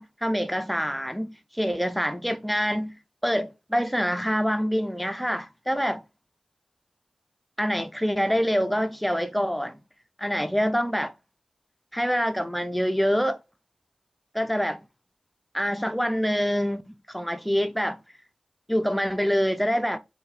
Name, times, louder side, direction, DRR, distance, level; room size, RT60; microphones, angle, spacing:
voice 1, 0.0-3.0 3.2-6.0 7.6-9.8 10.2-11.1 11.9-13.4 14.3-14.8 15.5-18.0 18.7-20.0, equal, ahead, 0.4 m, -26 dB
3.5 x 3.1 x 4.7 m
wide cardioid pair, 95°, 2 cm